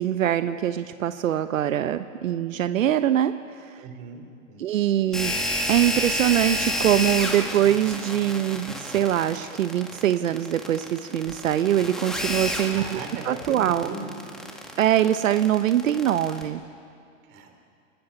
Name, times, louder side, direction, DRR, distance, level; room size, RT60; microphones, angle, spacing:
voice 1, 0.0-3.8 4.6-5.3 5.7-13.9 14.8-16.6, right 11 dB, 80° right, 10 dB, 1.0 m, -23 dB
voice 2, 3.8-4.6 12.7-14.1 17.3-17.5, right 4 dB, 30° right, 4 dB, 3.7 m, -39 dB
sound 1, 5.1-16.4, equal, ahead, 1.9 m, -30 dB
29.5 x 20.5 x 7.2 m, 2.4 s
hypercardioid pair, 160°, 39 cm